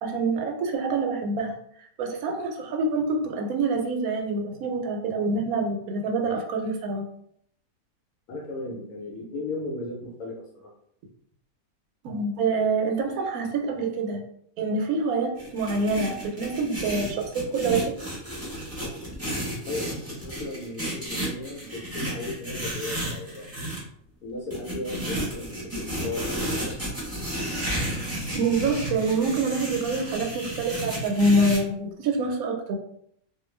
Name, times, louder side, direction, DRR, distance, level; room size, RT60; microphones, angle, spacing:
voice 1, 0.0-1.5 2.0-7.0 12.0-14.2 14.6-17.9 28.3-32.8, right 3 dB, 80° right, 2 dB, 1.0 m, -26 dB
voice 2, 8.3-10.7 19.7-23.5 24.2-26.8, left 2 dB, 80° left, -2 dB, 1.1 m, -36 dB
sound 1, 15.4-23.8 24.5-31.6, right 1 dB, 15° right, 0.7 m, -32 dB
2.4 x 2.3 x 3.1 m, 0.70 s
omnidirectional pair, 1.5 m